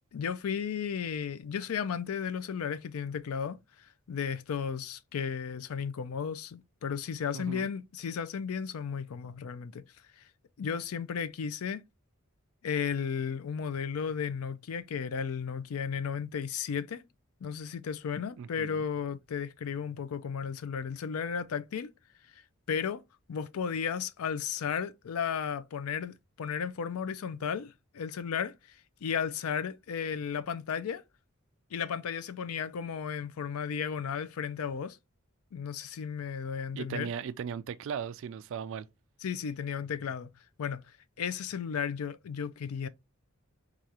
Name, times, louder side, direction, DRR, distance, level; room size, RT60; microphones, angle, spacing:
voice 1, 0.1-9.8 10.2-10.3 10.6-11.8 12.6-17.1 17.4-21.9 22.7-23.0 23.3-31.0 31.7-35.0 35.5-37.1 39.2-40.3 40.6-40.8 41.2-42.9, left 7 dB, 85° left, 0.4 m, -34 dB
voice 2, 7.3-7.7 18.4-18.9 36.7-38.9, right 7 dB, 60° right, 0.3 m, -37 dB
4.7 x 2.4 x 2.8 m
head